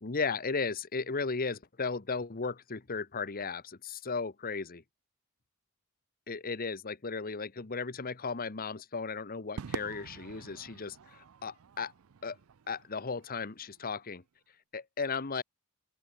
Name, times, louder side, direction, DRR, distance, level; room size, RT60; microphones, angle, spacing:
voice 1, 0.0-4.8 6.3-11.9 12.2-12.4 12.7-14.2 14.7-15.4, left 4 dB, 45° left, 1.1 m, -35 dB
Crowd / Fireworks, 9.6-14.1, right 6 dB, 80° right, 0.5 m, -46 dB
open air
head